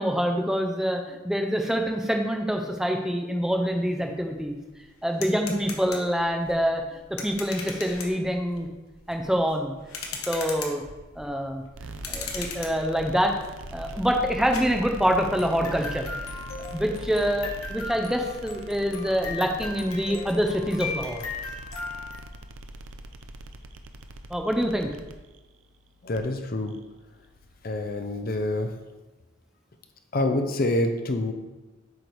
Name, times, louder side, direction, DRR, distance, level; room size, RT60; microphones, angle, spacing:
voice 1, 0.0-4.6 5.0-6.8 7.2-8.7 9.1-9.7 10.3-10.8 11.2-13.3 13.7-16.1 16.7-21.2 24.3-24.9, equal, 5° right, 3 dB, 0.5 m, -26 dB
sound 1, 3.8-3.9 4.2-22.2, left 4 dB, 90° left, 1.0 m, -39 dB
sound 2, 11.7-28.8, right 1 dB, 65° right, 0.5 m, -42 dB
voice 2, 26.0-26.8 27.6-28.8 30.1-31.3, left 1 dB, 45° left, 6 dB, 0.6 m, -26 dB
7.9 x 3.4 x 4.6 m, 1.1 s
head